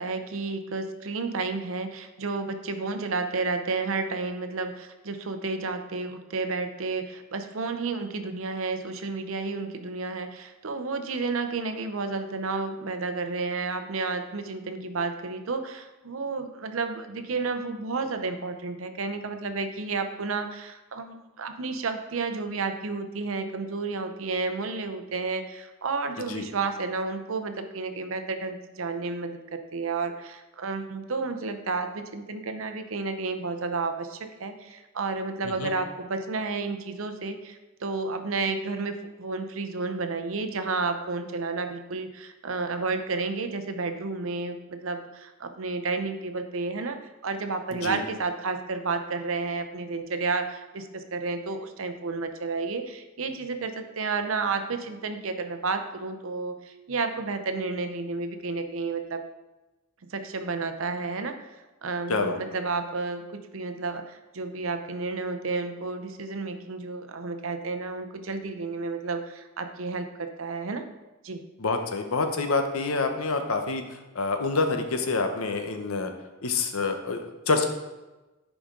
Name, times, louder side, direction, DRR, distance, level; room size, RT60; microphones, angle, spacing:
voice 1, 0.0-47.0 47.2-59.2 60.1-61.5 61.8-70.8 71.2-71.4, right 4 dB, 70° right, 8 dB, 0.7 m, -31 dB
voice 2, 71.6-73.8 74.1-76.1 76.4-77.6, left 3 dB, 90° left, 6 dB, 0.9 m, -27 dB
10.0 x 5.0 x 3.8 m, 1.1 s
head